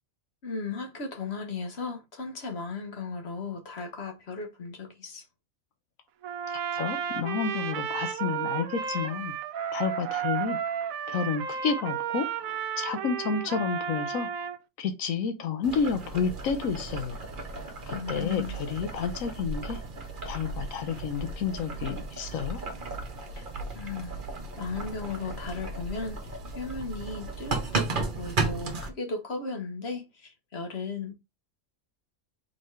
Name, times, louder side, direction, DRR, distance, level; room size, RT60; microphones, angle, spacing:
voice 1, 0.4-5.2 17.9-18.6 23.4-23.5 23.7-24.2 24.6-26.2 26.5-31.1, left 4 dB, 50° left, 1.2 m, -36 dB
Trumpet, 6.2-14.6, right 8 dB, 80° right, 1.0 m, -32 dB
voice 2, 6.5-9.3 9.7-10.6 11.1-14.3 14.8-17.2 17.9-19.8 20.2-22.6, left 6 dB, 75° left, 1.1 m, -30 dB
Boiling, 15.6-28.9, right 3 dB, 40° right, 1.0 m, -35 dB
4.0 x 3.7 x 3.2 m
omnidirectional pair, 1.4 m